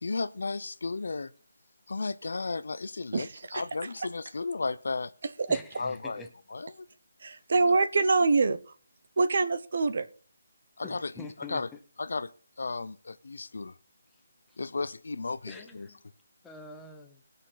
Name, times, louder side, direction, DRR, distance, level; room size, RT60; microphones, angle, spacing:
voice 1, 0.0-1.3 1.9-3.3 3.5-5.1 5.8-6.2 6.5-6.9 10.8-11.1 11.5-11.7 12.0-12.3 12.6-13.8 14.6-15.9, left 3 dB, 75° left, 0.6 m, -34 dB
voice 2, 3.1-3.6 5.5-5.6 7.2-8.6 9.2-10.1, right 3 dB, 55° right, 0.8 m, -25 dB
voice 3, 5.5-6.3 10.8-11.6 14.1-14.2 14.5-14.6 15.5-16.0 16.4-17.2, left 3 dB, 5° left, 0.9 m, -46 dB
19.5 x 6.6 x 3.9 m
hypercardioid pair, 170°, 0 cm